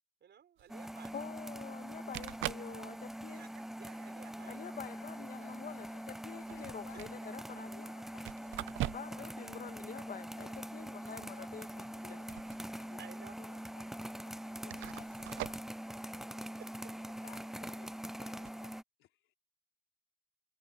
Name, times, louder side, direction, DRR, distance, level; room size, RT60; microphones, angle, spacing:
voice 1, 0.2-1.1 2.5-2.8 3.3-4.9 13.0-13.4 16.6-16.7, right 8 dB, 60° right, 6.1 m, -55 dB
sound 1, 0.6-0.7 1.9-2.0 2.1-2.7 3.2-3.6 4.5-4.6 6.3-7.2 8.3-9.3 9.6-9.7 12.0-12.7 13.0-13.1 13.9-14.0 14.7-15.7 18.3-18.5, right 16 dB, 80° right, 0.6 m, -42 dB
sound 2, 0.7-18.8, equal, ahead, 0.3 m, -44 dB
voice 2, 1.1-3.5 4.5-7.9 8.9-12.2, left 7 dB, 45° left, 2.0 m, -47 dB
voice 3, 4.8-9.3 10.4-12.3 12.7-15.6 17.2-19.4, left 13 dB, 85° left, 4.1 m, -61 dB
cardioid pair, 90°, 20 cm